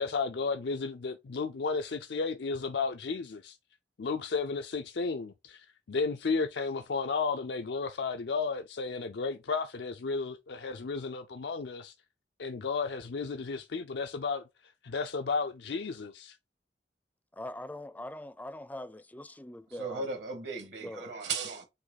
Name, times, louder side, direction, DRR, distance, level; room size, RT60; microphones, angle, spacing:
voice 1, 0.0-3.6 4.0-11.9 12.4-16.4, left 4 dB, 70° left, 0.5 m, -33 dB
voice 2, 17.3-20.1 20.8-21.1, left 1 dB, 10° left, 0.5 m, -42 dB
voice 3, 19.8-21.7, right 4 dB, 75° right, 1.9 m, -36 dB
7.9 x 3.1 x 4.0 m
head